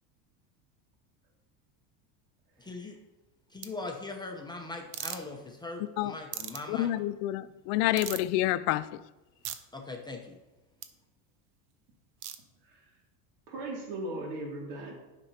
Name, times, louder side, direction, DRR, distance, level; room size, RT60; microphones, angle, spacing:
voice 1, 2.6-3.0 3.5-6.9 9.7-10.4, left 3 dB, 10° left, 0.8 m, -40 dB
sound 1, 3.6-3.7 4.9-5.2 6.3-6.6 8.0-8.3 9.4-9.6 10.8-10.9 12.2-12.4, right 11 dB, 60° right, 0.8 m, -37 dB
voice 2, 6.7-8.9, left 15 dB, 80° left, 0.5 m, -28 dB
voice 3, 13.5-14.9, right 2 dB, 85° right, 2.6 m, -38 dB
9.8 x 6.0 x 2.9 m
supercardioid pair, 125°, 47 cm